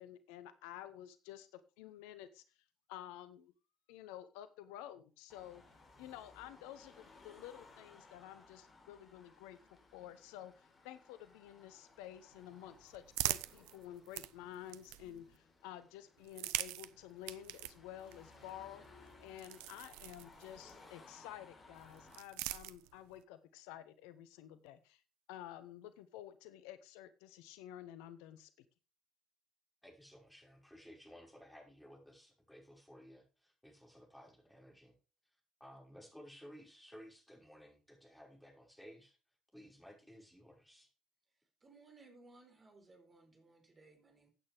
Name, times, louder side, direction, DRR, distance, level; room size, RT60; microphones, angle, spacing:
voice 1, 0.0-2.4 2.9-3.5 3.9-5.6 6.0-18.8 19.2-25.0 25.3-28.5, left 12 dB, 70° left, 13 dB, 0.8 m, -51 dB
Car passing by / Traffic noise roadway noise / Engine, 5.3-22.2, left 3 dB, 35° left, 4.3 m, -62 dB
sound 1, 12.3-15.4 16.2-20.8 21.7-23.2, right 17 dB, 70° right, 0.5 m, -44 dB
voice 2, 29.8-35.0 35.6-39.2 39.5-40.9, equal, ahead, 0 dB, 5.6 m, -57 dB
voice 3, 41.6-44.3, right 3 dB, 30° right, 5 dB, 4.3 m, -61 dB
15.0 x 8.8 x 3.5 m, 0.33 s
figure-of-eight pair, 50°, 0 cm